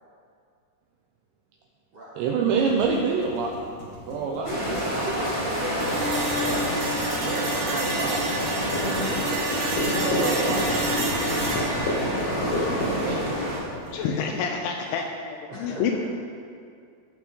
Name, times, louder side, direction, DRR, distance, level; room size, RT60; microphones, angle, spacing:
voice 1, 2.2-3.7 4.1-5.7 7.2-8.3 10.1-10.7 12.8-13.4, right 5 dB, 85° right, 0 dB, 2.4 m, -28 dB
sound 1, 2.7-14.2, left 1 dB, 50° left, 2.8 m, -32 dB
voice 2, 4.2-6.3 7.7-7.9 8.7-9.4 11.0-11.8 13.9-14.7 15.5-16.0, equal, 70° right, -8 dB, 1.5 m, -38 dB
sound 2, 4.4-13.6, equal, 15° left, 1.6 m, -28 dB
sound 3, 5.8-13.8, right 2 dB, 55° right, 2.6 m, -30 dB
voice 3, 13.9-16.0, left 6 dB, 85° left, 3 dB, 2.8 m, -28 dB
17.5 x 6.0 x 3.8 m, 2.3 s
omnidirectional pair, 5.8 m